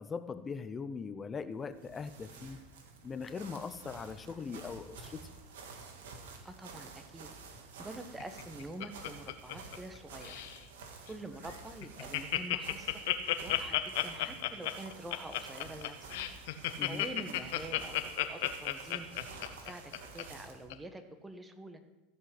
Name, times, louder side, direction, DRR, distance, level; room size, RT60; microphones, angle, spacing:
voice 1, 0.0-2.6 3.0-5.3 16.8-17.0, left 5 dB, 25° left, 12 dB, 0.7 m, -40 dB
sound 1, 1.6-20.7, right 4 dB, 85° right, 2.0 m, -51 dB
voice 2, 6.4-7.3 7.8-10.4 11.1-13.0 13.4-13.8 14.0-16.1 16.8-19.1 19.6-21.8, right 2 dB, 10° right, 8 dB, 1.4 m, -46 dB
Laughter, 8.2-10.0 10.2-10.6 11.1-11.2 11.4-11.5 11.8-20.2 20.7-20.8, left 16 dB, 75° left, 1.0 m, -33 dB
15.0 x 5.6 x 7.9 m, 1.0 s
supercardioid pair, 110°, 0 cm